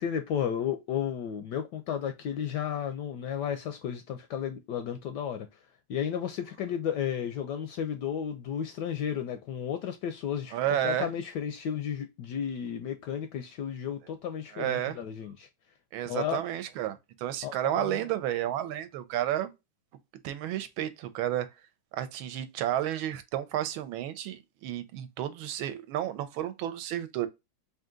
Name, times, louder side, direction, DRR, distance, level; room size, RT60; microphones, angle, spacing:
voice 1, 0.0-5.5 5.9-10.6 10.8-15.5 16.1-16.4 17.4-18.1, left 9 dB, 75° left, 1.0 m, -33 dB
voice 2, 10.5-11.1 14.5-15.0 15.9-19.5 20.2-21.5 21.9-27.3, right 12 dB, 85° right, 1.4 m, -31 dB
3.8 x 2.8 x 3.6 m
omnidirectional pair, 2.3 m